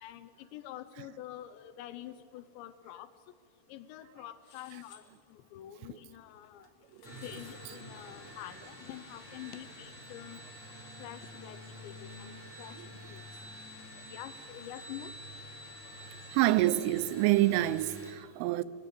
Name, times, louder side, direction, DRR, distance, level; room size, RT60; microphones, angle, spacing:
voice 1, 0.0-3.1 3.7-5.0 5.3-6.7 7.2-10.4 11.0-12.3 12.6-12.8 13.1-13.2 14.1-15.1, left 13 dB, 80° left, 2.8 m, -46 dB
sound 1, 4.4-5.1 6.6-7.6, left 6 dB, 50° left, 2.4 m, -58 dB
sound 2, 7.0-18.1, equal, 15° left, 3.1 m, -48 dB
voice 2, 16.3-18.6, right 16 dB, 90° right, 3.2 m, -27 dB
20.5 x 15.5 x 8.5 m
omnidirectional pair, 5.5 m